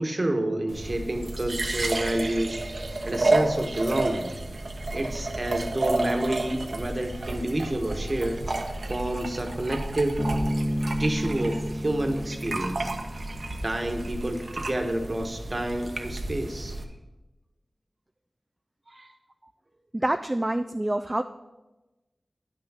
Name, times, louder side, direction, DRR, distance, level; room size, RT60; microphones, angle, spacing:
voice 1, 0.0-2.6 3.0-4.3 4.9-8.4 8.8-10.2 11.0-12.9 13.6-16.8 18.9-19.1, right 1 dB, 40° right, 4 dB, 1.3 m, -29 dB
sound 1, 0.7-16.8, right 2 dB, 70° right, 1.0 m, -31 dB
Bass guitar, 10.2-13.6, equal, 20° left, 1.4 m, -31 dB
voice 2, 19.9-21.2, right 1 dB, 25° right, 6 dB, 0.4 m, -26 dB
10.0 x 6.0 x 5.7 m, 1.1 s
wide cardioid pair, 50°, 0 cm